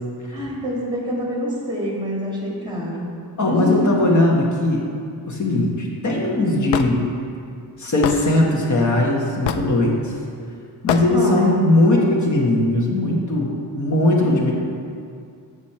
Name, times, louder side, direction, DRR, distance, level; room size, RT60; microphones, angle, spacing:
voice 1, 0.3-3.1 3.5-3.9 11.1-11.4 14.2-14.5, equal, 10° right, -4 dB, 1.7 m, -26 dB
voice 2, 3.4-4.8 5.3-7.0 7.8-10.1 10.8-13.5 13.7-14.5, left 1 dB, 40° left, -2 dB, 1.3 m, -19 dB
Hammer / Wood, 6.7-6.9 8.0-8.2 9.5-9.7 10.9-11.1, left 8 dB, 75° left, 0.5 m, -22 dB
7.0 x 6.3 x 4.3 m, 2.3 s
wide cardioid pair, 135°, 43 cm